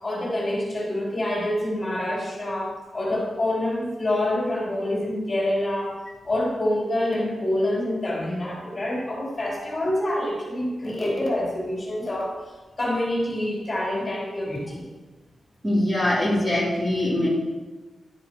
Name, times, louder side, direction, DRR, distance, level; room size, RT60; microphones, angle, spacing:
voice 1, 0.0-5.9 6.2-12.3 12.8-14.8, left 1 dB, 30° left, -6 dB, 3.7 m, -26 dB
voice 2, 15.6-17.3, left 1 dB, 15° right, -8 dB, 3.3 m, -22 dB
11.5 x 9.8 x 3.0 m, 1.2 s
wide cardioid pair, 140°, 0 cm